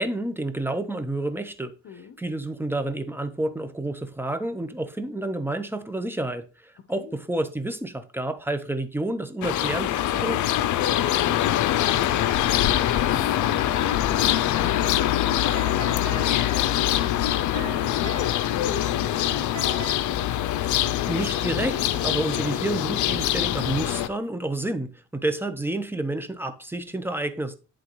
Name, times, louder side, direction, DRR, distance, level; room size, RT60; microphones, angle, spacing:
voice 1, 0.0-1.7 2.2-10.4 20.6-27.6, right 1 dB, 5° right, 0.8 m, -29 dB
voice 2, 1.8-2.2 7.0-7.1 10.9-17.6 18.0-20.0, left 7 dB, 55° left, 0.9 m, -38 dB
sound 1, 9.4-24.1, left 12 dB, 75° left, 0.6 m, -24 dB
sound 2, 14.3-20.0, right 10 dB, 80° right, 1.9 m, -43 dB
11.0 x 3.7 x 3.1 m
cardioid pair, 90°, 30 cm